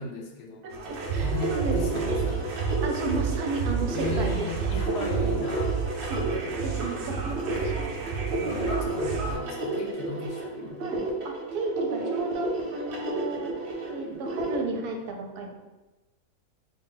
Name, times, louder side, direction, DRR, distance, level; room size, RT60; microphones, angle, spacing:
voice 1, 0.0-0.7 1.2-2.6 3.9-6.1 6.8-6.9 7.4-7.8 8.4-10.8, left 4 dB, 90° left, 2 dB, 1.2 m, -37 dB
voice 2, 0.6-2.1 2.8-4.5 5.2-5.3 6.1-7.9 10.8-13.5 13.9-15.6, right 3 dB, 90° right, 2 dB, 1.1 m, -34 dB
sound 1, 0.7-9.3, right 6 dB, 70° right, 1.0 m, -31 dB
sound 2, 0.8-14.5, right 2 dB, 50° right, 0.7 m, -32 dB
3.6 x 2.2 x 3.8 m, 1.1 s
omnidirectional pair, 1.6 m